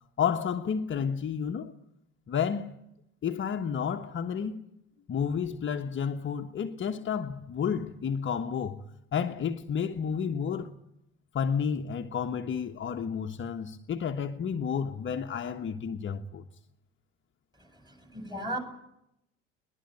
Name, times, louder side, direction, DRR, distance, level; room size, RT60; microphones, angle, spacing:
voice 1, 0.2-1.7 2.3-2.7 3.2-4.6 5.1-8.8 9.1-10.7 11.3-16.4, left 7 dB, 30° left, 1.4 m, -31 dB
voice 2, 17.9-18.6, right 1 dB, 10° right, 7.8 m, -35 dB
22.0 x 20.0 x 9.2 m
figure-of-eight pair, 70°, 38 cm